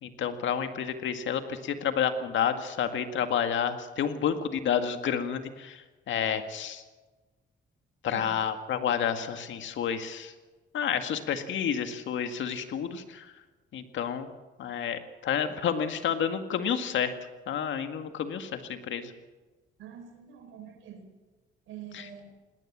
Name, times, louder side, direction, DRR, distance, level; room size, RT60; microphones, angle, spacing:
voice 1, 0.0-5.8 6.1-6.8 8.0-10.3 10.7-13.3 13.7-14.3 14.6-17.1 17.5-19.1 21.9-22.0, left 8 dB, 70° left, 8 dB, 1.9 m, -30 dB
voice 2, 19.8-21.1 21.7-22.3, right 8 dB, 90° right, 6 dB, 4.3 m, -45 dB
19.5 x 18.5 x 7.4 m, 1.3 s
cardioid pair, 90°, 20 cm